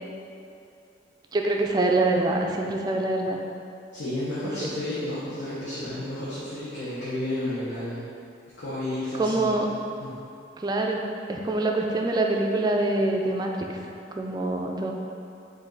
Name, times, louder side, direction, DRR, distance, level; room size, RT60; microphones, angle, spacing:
voice 1, 1.3-3.4 9.2-9.7 10.6-13.5 14.2-14.9, right 2 dB, 20° right, 1 dB, 0.3 m, -25 dB
voice 2, 3.9-8.0 8.6-10.2, left 1 dB, 65° left, -11 dB, 1.0 m, -32 dB
5.0 x 2.6 x 3.9 m, 2.6 s
head